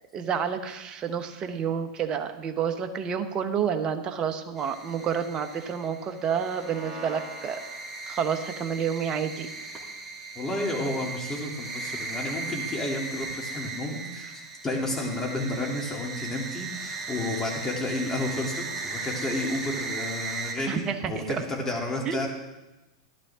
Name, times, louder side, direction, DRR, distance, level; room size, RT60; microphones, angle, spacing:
voice 1, 0.1-7.6 8.1-9.5 20.7-21.4 22.0-22.3, right 7 dB, 30° right, 7 dB, 1.1 m, -29 dB
sound 1, 4.6-20.5, right 3 dB, 15° right, 2.6 m, -37 dB
voice 2, 10.3-14.3 14.6-22.3, left 1 dB, 15° left, -1 dB, 3.0 m, -31 dB
13.0 x 11.5 x 3.7 m, 1.0 s
hypercardioid pair, 110°, 3 cm